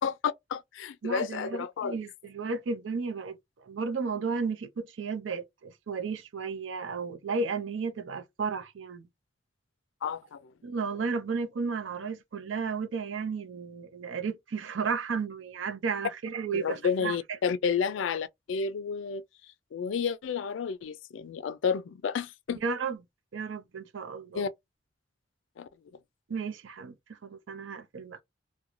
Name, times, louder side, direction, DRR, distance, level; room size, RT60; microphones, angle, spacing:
voice 1, 0.0-2.0 10.0-10.4 16.5-19.2 19.7-22.6 24.3-24.5 25.6-25.7, left 6 dB, 80° left, 0.3 m, -31 dB
voice 2, 1.0-3.4 3.7-9.1 10.6-17.2 22.6-23.0 23.3-24.5 26.3-28.2, right 5 dB, 80° right, 0.5 m, -33 dB
2.5 x 2.2 x 2.9 m
head